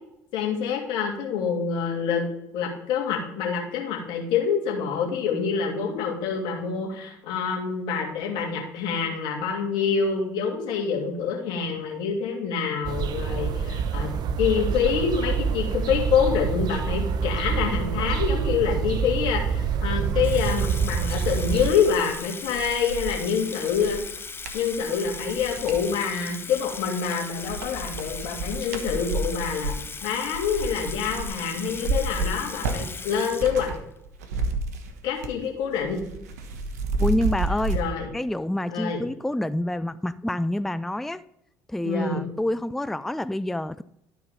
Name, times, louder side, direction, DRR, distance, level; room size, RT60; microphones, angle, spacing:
voice 1, 0.3-2.2 2.5-14.1 14.4-24.0 24.5-33.7 35.0-36.0 37.7-38.1 38.7-39.0 41.8-42.3, left 6 dB, 60° left, 2.3 m, -26 dB
sound 1, 12.8-21.7, right 6 dB, 55° right, 0.8 m, -26 dB
sound 2, 19.7-25.8 26.4-27.0 27.3-33.8 34.0-35.4 35.7-37.8, right 3 dB, 80° right, 1.1 m, -32 dB
Water tap faucet / Sink (filling or washing), 20.2-34.0, left 4 dB, 25° left, 0.8 m, -38 dB
voice 2, 37.0-37.8 38.1-41.2 41.7-43.8, left 1 dB, 5° left, 0.4 m, -27 dB
12.0 x 4.6 x 5.2 m
hypercardioid pair, 60°, 9 cm